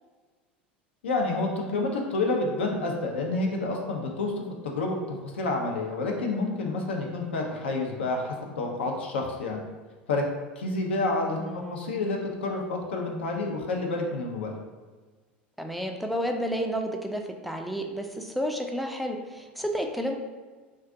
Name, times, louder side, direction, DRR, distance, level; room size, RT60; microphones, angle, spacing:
voice 1, 1.0-9.6 10.1-10.3 10.6-14.6, left 2 dB, 75° left, 1 dB, 0.5 m, -29 dB
voice 2, 11.4-12.0 15.6-20.2, equal, ahead, 3 dB, 0.4 m, -31 dB
2.4 x 2.3 x 3.6 m, 1.4 s
hypercardioid pair, 80°, 6 cm